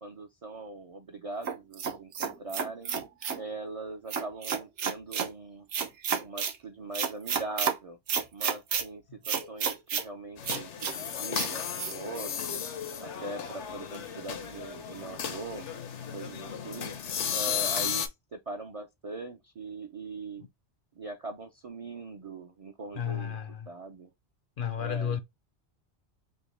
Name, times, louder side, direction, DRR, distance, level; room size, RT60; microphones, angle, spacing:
voice 1, 0.0-2.9 3.3-5.7 6.2-8.0 8.3-12.6 13.0-15.7 16.1-16.9 17.3-18.1 18.3-20.4 21.0-23.4 23.7-24.1 24.8-25.2, right 3 dB, 50° right, 0.4 m, -41 dB
sound 1, 1.5-3.4 4.1-5.3 5.7-6.6 6.9-7.8 8.1-8.8 9.3-10.1 10.4-10.9 11.3-11.5 11.8-11.9, right 7 dB, 85° right, 1.1 m, -30 dB
sound 2, 10.4-18.1, left 8 dB, 85° left, 1.1 m, -34 dB
voice 2, 22.9-23.7 24.6-25.2, left 8 dB, 60° left, 0.6 m, -32 dB
5.3 x 2.1 x 3.2 m
omnidirectional pair, 1.2 m